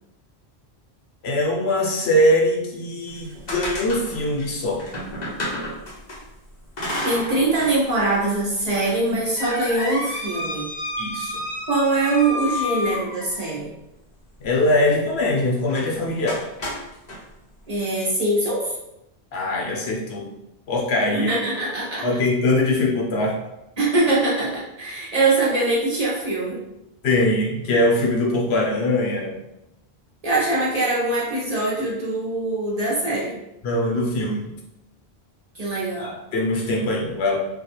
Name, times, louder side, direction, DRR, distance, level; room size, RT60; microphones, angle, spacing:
voice 1, 1.2-4.8 11.0-11.4 14.4-16.4 19.3-20.3 20.7-21.3 22.0-23.4 27.0-29.3 33.6-34.5 36.0-37.4, left 1 dB, 80° left, -1 dB, 0.9 m, -22 dB
sound 1, 3.1-6.2 6.8-7.8 8.1-8.2 8.9-13.5 15.7-15.9 16.3-17.2, left 1 dB, 45° left, 0.8 m, -30 dB
voice 2, 7.0-10.7 11.7-13.7 17.7-18.7 21.1-22.1 23.8-26.6 30.2-33.4 35.5-36.1, right 2 dB, 45° right, -6 dB, 0.7 m, -23 dB
2.3 x 2.2 x 2.9 m, 0.89 s
omnidirectional pair, 1.1 m